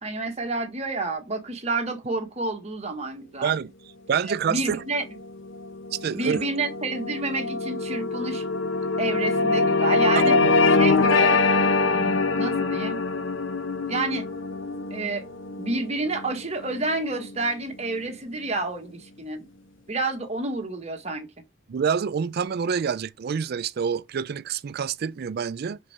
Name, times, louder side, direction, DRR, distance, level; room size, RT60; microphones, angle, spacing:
voice 1, 0.0-3.5 4.3-5.0 6.1-8.4 9.0-10.4 10.7-11.4 11.8-13.0 13.9-14.2 14.9-15.2 15.6-19.5 19.9-21.3, right 2 dB, 30° right, 1.4 m, -29 dB
voice 2, 3.4-3.7 4.1-4.8 5.9-6.5 10.2-10.6 21.7-25.8, right 7 dB, 50° right, 0.4 m, -27 dB
sound 1, 5.0-17.6, left 3 dB, 65° left, 0.8 m, -24 dB
5.5 x 5.0 x 5.8 m
head